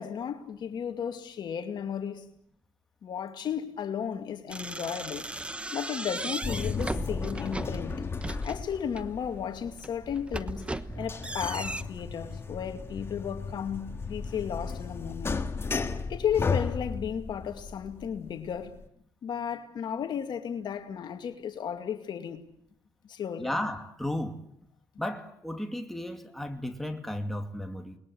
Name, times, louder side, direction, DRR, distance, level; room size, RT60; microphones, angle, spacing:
voice 1, 0.0-2.3 3.0-5.3 5.7-8.0 8.4-15.4 16.1-18.8 19.2-22.4 23.0-23.5, left 8 dB, 60° left, 2.4 m, -34 dB
sound 1, 4.5-9.1 9.6-11.8, right 2 dB, 15° right, 1.1 m, -37 dB
sound 2, 6.4-18.8, left 4 dB, 30° left, 1.8 m, -35 dB
voice 2, 23.4-24.4 25.0-28.0, left 1 dB, 5° left, 2.5 m, -34 dB
29.0 x 21.0 x 7.9 m
cardioid pair, 100°, 9 cm